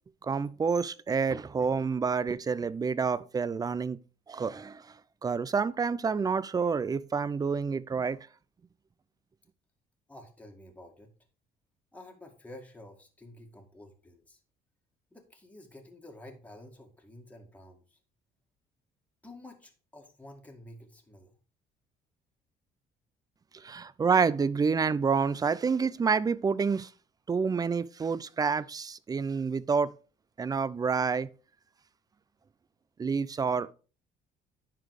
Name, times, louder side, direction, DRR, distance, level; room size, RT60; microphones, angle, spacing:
voice 1, 0.2-4.0 4.3-4.8 5.2-8.2 23.5-26.9 27.3-29.9 30.4-31.3 33.0-33.7, right 5 dB, 20° right, 0.4 m, -28 dB
voice 2, 10.1-11.1 11.9-14.4 15.1-18.0 19.2-21.4, left 1 dB, 10° left, 1.9 m, -50 dB
10.0 x 4.1 x 4.8 m
cardioid pair, 110°, 17 cm